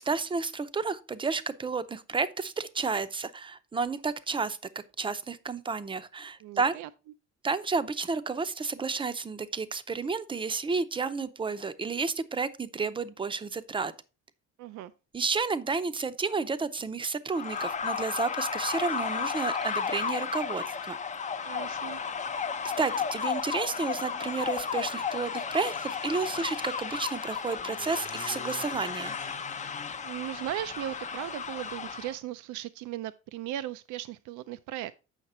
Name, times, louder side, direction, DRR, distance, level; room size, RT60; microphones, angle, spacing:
voice 1, 0.0-4.6 5.0-6.7 7.4-13.9 15.1-21.0 22.8-29.2, right 4 dB, 15° right, 0.6 m, -31 dB
voice 2, 6.4-6.9 14.6-14.9 21.4-22.0 30.0-34.9, right 13 dB, 80° right, 0.5 m, -37 dB
sound 1, 17.3-32.1, left 6 dB, 25° left, 0.6 m, -33 dB
8.1 x 5.7 x 4.2 m
cardioid pair, 120°, 29 cm